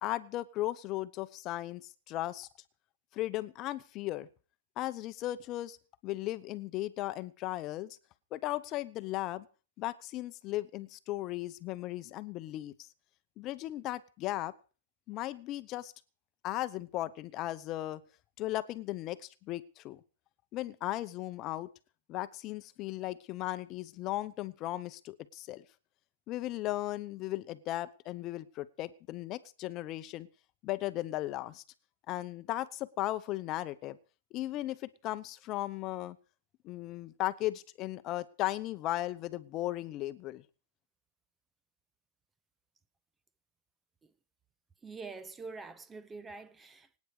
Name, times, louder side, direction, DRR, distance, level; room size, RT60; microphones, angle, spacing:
voice 1, 0.0-2.5 3.1-4.3 4.8-5.8 6.0-8.0 8.3-9.5 9.8-12.7 13.4-14.5 15.1-15.9 16.4-18.0 18.4-20.0 20.5-21.7 22.1-25.6 26.3-30.3 30.6-31.6 32.1-34.0 34.3-36.2 36.6-40.4, left 16 dB, 30° left, 0.9 m, -36 dB
voice 2, 44.8-47.0, right 4 dB, 10° right, 0.7 m, -45 dB
25.0 x 9.5 x 4.9 m
hypercardioid pair, 155°, 0 cm